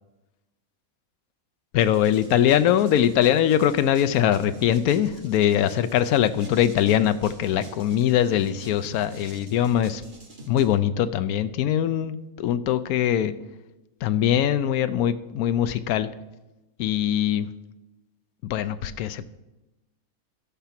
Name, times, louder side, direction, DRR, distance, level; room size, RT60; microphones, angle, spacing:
voice 1, 1.7-10.0 10.5-13.3 14.0-16.1 16.8-17.5 18.4-19.3, left 10 dB, 85° left, 13 dB, 1.1 m, -22 dB
sound 1, 1.8-10.7, right 1 dB, 35° right, 1.7 m, -46 dB
13.5 x 5.9 x 5.8 m, 1.1 s
omnidirectional pair, 1.5 m